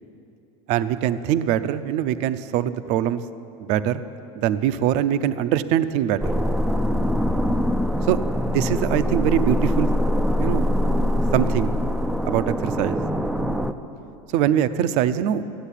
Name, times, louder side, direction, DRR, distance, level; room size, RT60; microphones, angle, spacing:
voice 1, 0.7-3.2 3.6-4.0 4.3-6.3 8.1-8.2 8.4-9.9 10.4-10.7 11.3-11.7 12.2-13.0 14.3-15.4, right 10 dB, 50° right, 13 dB, 0.6 m, -22 dB
sound 1, 6.2-13.7, equal, ahead, 0.4 m, -23 dB
13.5 x 8.0 x 9.9 m, 2.7 s
supercardioid pair, 155°, 15 cm